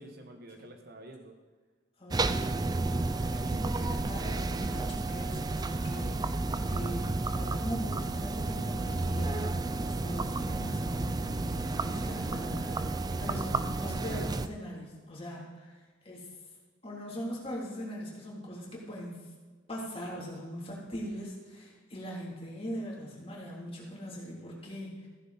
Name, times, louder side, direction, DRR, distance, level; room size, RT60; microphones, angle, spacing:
voice 1, 0.0-1.3 3.4-3.6, right 2 dB, 50° right, 5 dB, 1.2 m, -48 dB
voice 2, 2.0-2.6 3.1-16.3 16.8-19.2 19.7-25.1, equal, 30° left, -4 dB, 3.3 m, -41 dB
sound 1, 2.1-14.5, right 2 dB, 20° right, 0.4 m, -32 dB
15.0 x 9.8 x 4.3 m, 1.4 s
head